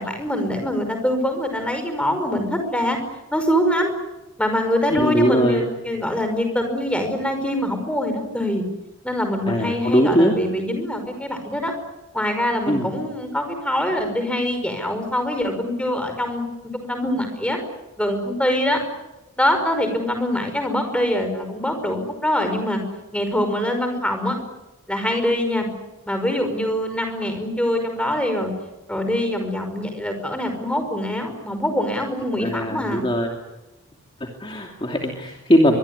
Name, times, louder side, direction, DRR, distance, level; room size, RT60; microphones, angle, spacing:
voice 1, 0.0-3.0 3.3-3.9 4.4-8.6 9.0-11.7 12.1-16.4 16.7-17.6 18.0-18.8 19.4-22.8 23.1-24.4 24.9-25.7 26.1-28.5 28.9-33.0, left 1 dB, 5° left, 6 dB, 5.3 m, -24 dB
voice 2, 4.9-5.6 9.5-10.4 12.7-12.9 32.4-33.3 34.2-35.8, equal, 25° left, 1 dB, 2.6 m, -20 dB
24.0 x 23.0 x 9.8 m, 0.98 s
head